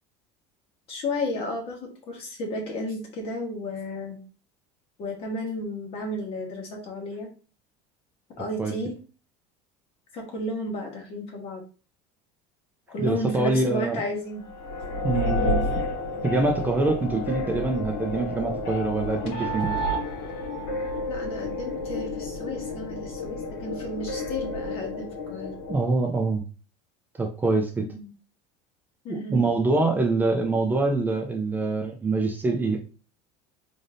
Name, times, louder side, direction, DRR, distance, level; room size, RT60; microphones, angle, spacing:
voice 1, 0.9-4.2 5.0-7.3 8.4-9.0 10.1-11.6 12.9-14.4 15.3-15.7 21.1-25.5 27.9-28.1 29.0-29.4, left 1 dB, 45° left, 1 dB, 1.5 m, -33 dB
voice 2, 13.0-14.0 15.0-15.5 16.2-19.7 25.7-26.4 27.2-27.9 29.1-32.8, right 3 dB, 15° right, 2 dB, 0.5 m, -25 dB
sound 1, 14.4-25.7, left 1 dB, 80° left, 2.2 m, -30 dB
3.9 x 3.2 x 2.6 m, 0.36 s
cardioid pair, 145°, 14 cm